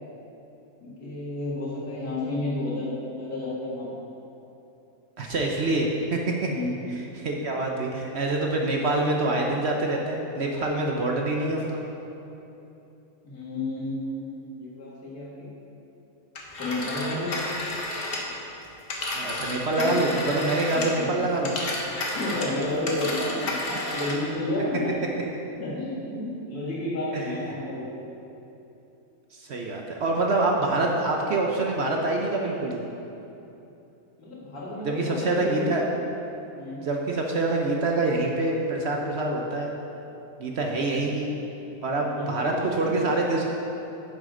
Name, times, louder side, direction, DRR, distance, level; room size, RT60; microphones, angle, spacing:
voice 1, 0.8-4.0 6.5-6.8 13.2-15.5 16.6-17.3 19.7-20.1 20.7-21.2 22.1-24.9 25.6-27.9 34.2-35.7 36.6-36.8 42.1-43.1, left 1 dB, 80° left, -7 dB, 2.6 m, -31 dB
voice 2, 5.2-6.5 7.2-11.8 19.1-21.6 27.1-27.3 29.3-32.8 34.8-35.8 36.8-39.7 40.4-41.3 41.8-43.4, right 2 dB, 55° right, 0 dB, 0.9 m, -26 dB
Telephone, 16.3-21.1 21.4-24.3, left 2 dB, 40° left, 1.2 m, -32 dB
10.0 x 7.6 x 3.8 m, 2.9 s
omnidirectional pair, 1.6 m